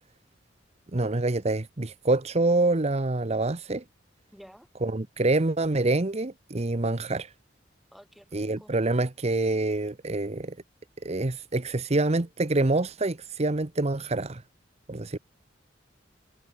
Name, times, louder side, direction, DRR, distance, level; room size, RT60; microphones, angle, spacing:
voice 1, 0.9-3.8 4.8-7.3 8.3-10.6 11.0-14.4 14.9-15.2, right 2 dB, 35° right, 1.0 m, -26 dB
voice 2, 4.3-4.7 7.9-8.7, equal, ahead, 4.6 m, -51 dB
head